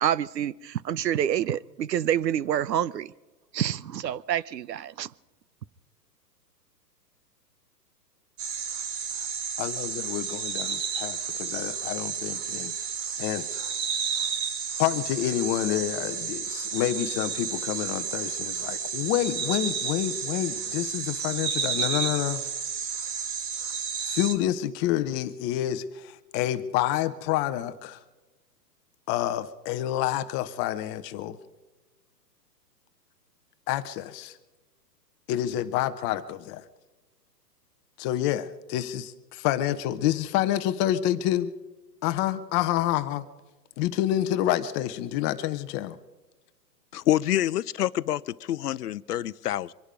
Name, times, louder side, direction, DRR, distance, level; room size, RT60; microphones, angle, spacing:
voice 1, 0.0-3.1 3.5-5.1, right 10 dB, 75° right, 0.8 m, -27 dB
sound 1, 8.4-24.4, right 6 dB, 40° right, 2.1 m, -31 dB
voice 2, 9.6-12.7 13.2-13.7 14.8-22.4 24.1-28.0 29.1-31.4 33.7-34.4 35.3-36.6 38.0-41.5 42.0-43.3 43.8-46.0, left 13 dB, 20° left, 0.8 m, -28 dB
voice 3, 46.9-49.7, left 12 dB, 65° left, 0.7 m, -27 dB
24.5 x 11.0 x 4.9 m
hypercardioid pair, 130°, 50 cm